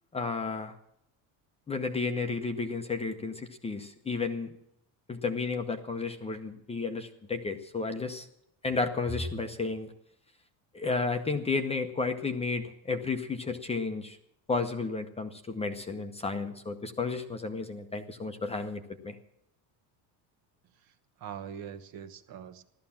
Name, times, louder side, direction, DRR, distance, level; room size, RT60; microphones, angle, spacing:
voice 1, 0.1-0.7 1.7-4.5 5.1-8.3 8.6-9.9 10.7-14.2 14.5-19.2, left 4 dB, 15° left, 6 dB, 0.9 m, -32 dB
voice 2, 20.8-22.6, right 8 dB, 45° right, 10 dB, 1.4 m, -43 dB
15.5 x 13.0 x 7.2 m, 0.78 s
cardioid pair, 160°, 48 cm